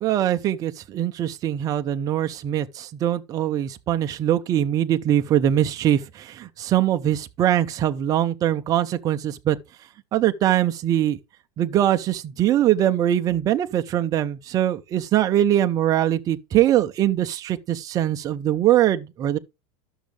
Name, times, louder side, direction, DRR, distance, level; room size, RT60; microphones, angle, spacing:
voice 1, 0.0-9.6 10.1-11.2 11.6-19.4, right 11 dB, 25° right, 0.5 m, -22 dB
12.0 x 6.3 x 3.3 m
supercardioid pair, 165°, 15 cm